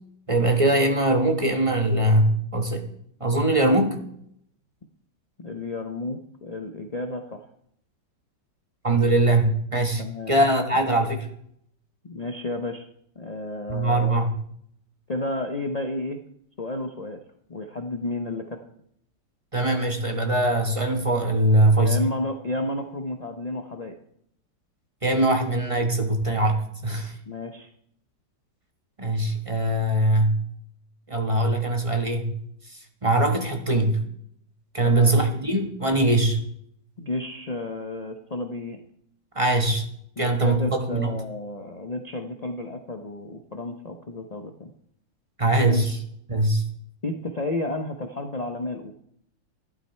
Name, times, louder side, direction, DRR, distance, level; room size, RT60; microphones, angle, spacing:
voice 1, 0.3-2.8 3.2-4.0 8.8-11.3 13.7-14.3 19.5-22.0 25.0-27.1 29.0-30.4 31.1-32.4 33.0-34.0 34.7-36.4 39.3-39.8 40.2-41.1 45.4-46.0 46.3-46.7, right 1 dB, 20° right, 4 dB, 1.1 m, -22 dB
voice 2, 5.4-7.4 10.0-10.3 12.0-12.9 13.2-14.2 15.1-16.2 16.6-17.2 17.5-18.6 21.8-24.0 27.3-27.7 34.8-35.2 37.0-38.8 40.2-44.7 45.6-46.0 47.0-48.9, left 2 dB, 55° left, 4 dB, 0.4 m, -32 dB
12.5 x 11.5 x 4.4 m, 0.69 s
omnidirectional pair, 2.0 m